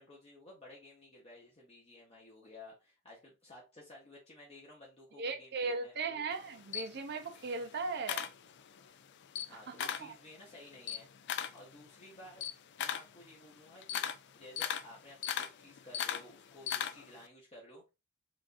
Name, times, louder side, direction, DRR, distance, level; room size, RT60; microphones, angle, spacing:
voice 1, 0.0-6.2 9.5-11.1 11.5-12.4 12.8-14.0 14.3-17.9, left 1 dB, 30° left, 1.0 m, -54 dB
voice 2, 5.2-8.3 9.5-10.1, right 4 dB, 50° right, 0.6 m, -38 dB
Camera, 6.3-8.9 9.2-10.2 10.5-17.2, left 9 dB, 55° left, 0.4 m, -38 dB
4.9 x 2.6 x 2.5 m
head